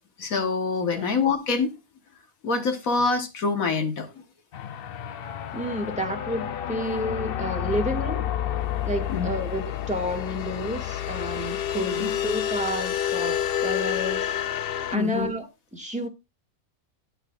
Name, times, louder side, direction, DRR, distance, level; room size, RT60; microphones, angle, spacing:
voice 1, 0.2-1.7 2.4-4.1 9.1-9.3 12.0-12.1 14.9-15.3, left 4 dB, 80° left, 1.8 m, -25 dB
sound 1, 4.5-15.0, left 10 dB, 55° left, 0.6 m, -29 dB
voice 2, 5.5-8.3 8.8-14.3 14.9-16.1, equal, 5° right, 2.1 m, -30 dB
18.0 x 6.6 x 2.4 m
omnidirectional pair, 1.5 m